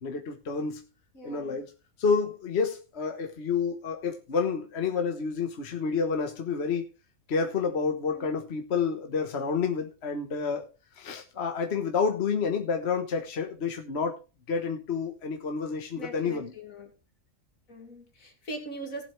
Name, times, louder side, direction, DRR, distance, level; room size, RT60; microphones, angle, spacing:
voice 1, 0.0-0.8 1.2-1.7 2.0-6.9 7.3-10.7 11.0-14.2 14.5-16.5, left 5 dB, 50° left, 1.4 m, -29 dB
voice 2, 1.1-1.6 8.1-8.4 16.0-16.9 17.7-19.0, right 1 dB, 80° left, 3.0 m, -41 dB
18.5 x 7.7 x 3.3 m
omnidirectional pair, 1.4 m